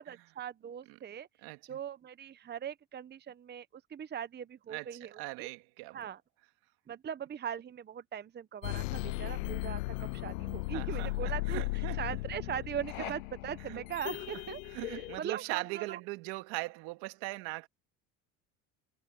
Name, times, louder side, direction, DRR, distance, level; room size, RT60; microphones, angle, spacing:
voice 1, 0.0-1.3 1.7-5.5 5.9-6.2 6.9-11.6 12.0-14.6 14.9-16.0, right 9 dB, 25° right, 0.8 m, -40 dB
voice 2, 1.4-1.8 4.7-6.0 10.0-10.1 10.7-12.0 13.0-13.1 13.7-13.8 14.1-14.2 14.6-17.7, right 22 dB, 70° right, 2.0 m, -40 dB
sound 1, 8.6-15.2, left 22 dB, 90° left, 0.5 m, -36 dB
supercardioid pair, 90°, 39 cm